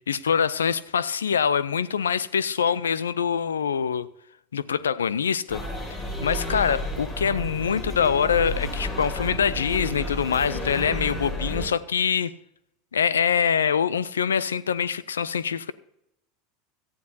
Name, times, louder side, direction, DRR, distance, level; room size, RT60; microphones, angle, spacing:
voice 1, 0.1-4.1 4.5-5.6 6.2-12.3 12.9-15.7, left 7 dB, 90° left, 0.5 m, -24 dB
sound 1, 5.5-11.7, left 1 dB, 45° left, 5.8 m, -31 dB
17.5 x 13.0 x 2.8 m
hypercardioid pair, 85°, 0 cm